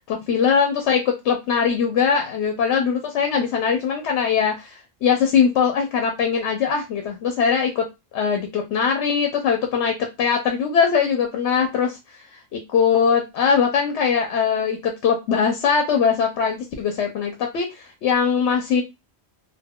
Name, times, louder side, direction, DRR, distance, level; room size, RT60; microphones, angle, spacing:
voice 1, 0.1-7.9 8.1-12.0 12.5-18.8, left 6 dB, 85° left, 4 dB, 0.9 m, -21 dB
2.2 x 2.2 x 3.4 m, 0.23 s
omnidirectional pair, 1.1 m